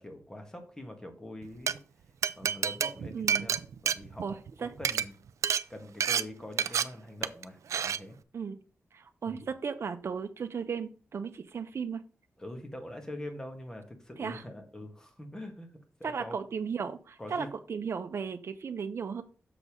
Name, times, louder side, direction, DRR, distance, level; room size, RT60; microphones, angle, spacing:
voice 1, 0.0-1.8 2.4-5.2 5.7-8.2 9.2-9.4 12.4-16.4 17.2-17.5, left 1 dB, 10° left, 4 dB, 1.6 m, -44 dB
Glass, 1.4-1.7 2.2-4.5 4.8-5.0 5.4-5.6 6.0-6.2 6.6-6.8 7.2-7.4 7.7-8.0, right 8 dB, 85° right, 0.4 m, -28 dB
voice 2, 3.1-3.5 4.2-4.7 8.3-8.6 8.9-12.0 14.2-14.4 16.0-19.2, right 6 dB, 55° right, 8 dB, 0.8 m, -35 dB
6.8 x 4.0 x 6.1 m, 0.38 s
wide cardioid pair, 155°, 5 cm